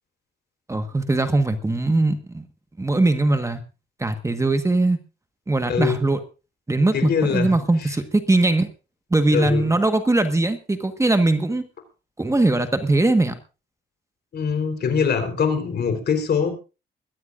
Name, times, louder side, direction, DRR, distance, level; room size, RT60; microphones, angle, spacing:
voice 1, 0.7-2.4 2.8-3.6 4.0-5.0 5.5-6.2 6.7-8.7 9.1-11.6 12.2-13.3, right 2 dB, 15° right, 8 dB, 1.4 m, -20 dB
voice 2, 5.6-6.0 6.9-7.5 7.8-7.9 9.3-9.7 14.3-16.5, left 6 dB, 55° left, 7 dB, 4.0 m, -23 dB
21.5 x 15.0 x 2.6 m, 0.32 s
cardioid pair, 90°, 20 cm